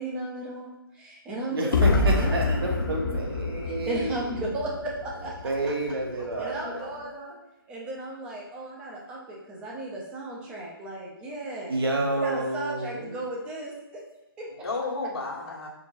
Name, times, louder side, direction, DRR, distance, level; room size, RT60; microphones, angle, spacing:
voice 1, 0.0-3.2 3.8-5.7 6.4-7.4 7.7-11.8 12.2-14.0 14.4-14.5, right 2 dB, 5° right, -3 dB, 0.4 m, -35 dB
voice 2, 1.5-4.3 5.4-6.9 11.7-13.2, right 2 dB, 75° right, 0 dB, 1.0 m, -29 dB
sound 1, 1.7-5.6, left 3 dB, 55° left, 0.4 m, -26 dB
voice 3, 6.2-7.1 12.1-12.2 14.5-15.7, left 3 dB, 90° left, -3 dB, 1.2 m, -35 dB
3.8 x 3.6 x 2.4 m, 0.89 s
hypercardioid pair, 155°, 13 cm